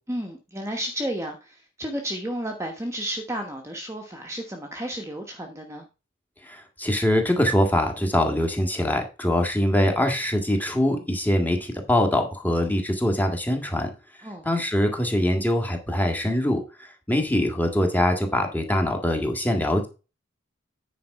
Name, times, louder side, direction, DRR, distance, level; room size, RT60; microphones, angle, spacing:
voice 1, 0.1-5.9 14.2-14.5, equal, 15° right, 2 dB, 1.1 m, -32 dB
voice 2, 6.4-13.9 14.4-16.6 17.1-19.9, left 1 dB, 10° left, 4 dB, 1.8 m, -23 dB
9.4 x 5.1 x 4.7 m, 0.30 s
head